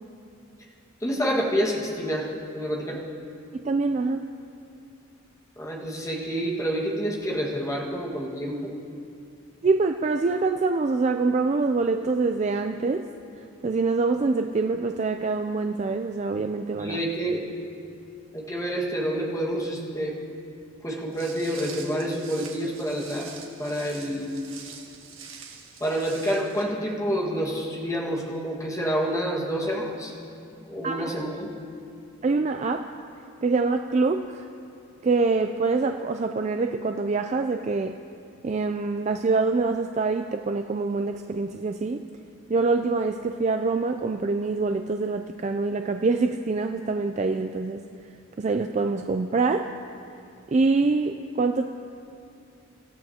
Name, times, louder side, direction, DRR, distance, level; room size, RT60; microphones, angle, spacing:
voice 1, 1.0-3.0 5.6-8.7 16.8-17.4 18.3-20.2 20.8-24.3 25.8-30.1 30.6-31.5, equal, 15° left, -3 dB, 1.6 m, -28 dB
voice 2, 3.5-4.2 9.6-13.1 13.6-17.0 30.8-31.1 32.2-32.8 33.4-34.4 35.0-37.9 38.4-42.0 42.5-47.8 48.4-49.7 50.5-51.7, right 3 dB, 35° right, 6 dB, 0.3 m, -25 dB
Walk footsteps, 21.1-26.6, right 6 dB, 65° right, 1.8 m, -44 dB
24.5 x 14.0 x 2.9 m, 2.6 s
head